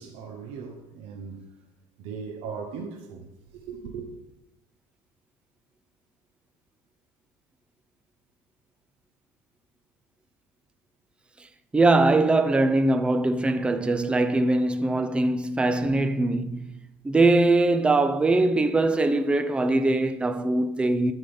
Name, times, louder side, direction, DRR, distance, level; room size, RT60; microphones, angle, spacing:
voice 1, 0.0-1.5 2.0-3.2 3.5-4.1, right 5 dB, 65° right, 1.0 m, -38 dB
voice 2, 11.7-16.7 17.0-21.1, right 2 dB, 10° right, 0.4 m, -22 dB
10.5 x 3.9 x 5.2 m
cardioid pair, 130°, 11 cm